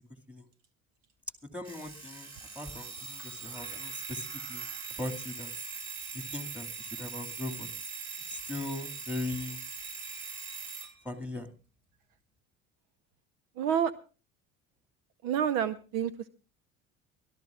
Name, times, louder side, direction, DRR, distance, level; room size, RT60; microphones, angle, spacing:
voice 1, 1.5-2.3 2.5-4.7 5.0-5.5 6.1-7.7 8.3-9.6 11.0-11.5, left 2 dB, 5° right, 7 dB, 2.3 m, -39 dB
Alarm, 1.6-10.9, right 5 dB, 40° right, 7.8 m, -41 dB
voice 2, 13.6-13.9 15.2-16.3, right 8 dB, 60° right, 15 dB, 0.9 m, -28 dB
24.5 x 14.5 x 2.4 m, 0.34 s
figure-of-eight pair, 65°, 42 cm